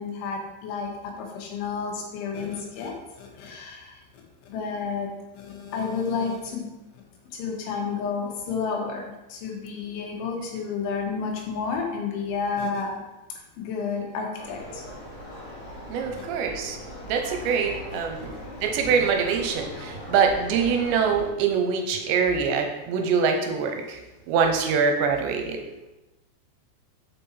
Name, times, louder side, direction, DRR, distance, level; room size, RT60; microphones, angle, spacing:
voice 1, 0.0-3.9 4.5-5.1 5.4-6.7 7.3-13.0 13.6-14.8 16.2-16.3, left 5 dB, 85° left, 0 dB, 3.7 m, -31 dB
sound 1, 14.4-21.3, left 1 dB, 40° left, 2.0 m, -40 dB
voice 2, 15.9-16.8 17.1-18.3 18.6-24.0 24.3-25.6, right 6 dB, 85° right, 4 dB, 2.8 m, -24 dB
6.9 x 5.4 x 4.3 m, 1.0 s
omnidirectional pair, 5.3 m